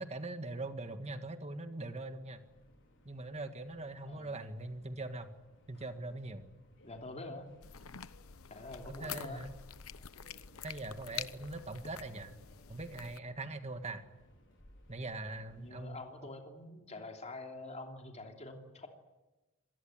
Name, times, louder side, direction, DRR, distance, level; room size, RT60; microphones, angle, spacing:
voice 1, 0.0-2.4 3.1-5.3 5.7-6.5 9.0-9.5 10.6-12.3 12.7-14.1 14.9-16.0, right 2 dB, 30° right, 8 dB, 1.7 m, -42 dB
Subway metro underground, 1.8-16.2, left 1 dB, 60° left, 5.2 m, -63 dB
voice 2, 6.8-7.5 8.5-9.4 15.5-18.9, left 2 dB, 35° left, 3 dB, 3.0 m, -46 dB
sound 1, 7.6-13.2, left 9 dB, 80° left, 0.9 m, -47 dB
26.0 x 19.0 x 9.0 m, 1.1 s
head